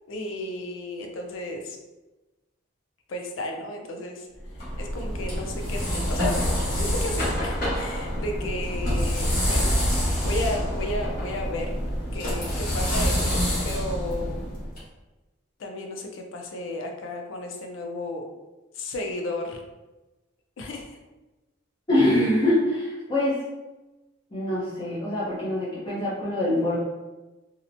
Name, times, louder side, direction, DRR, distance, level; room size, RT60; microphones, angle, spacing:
voice 1, 0.1-1.8 3.1-4.3 4.8-6.4 6.7-9.8 10.2-11.7 12.1-14.4 15.6-18.2 18.7-19.6 20.6-21.0, left 2 dB, 75° left, 3 dB, 0.4 m, -33 dB
sound 1, 4.4-14.8, equal, 45° left, 1.2 m, -26 dB
voice 2, 21.9-23.4 24.3-26.8, left 1 dB, 25° left, -11 dB, 0.6 m, -24 dB
2.8 x 2.1 x 2.5 m, 1.1 s
head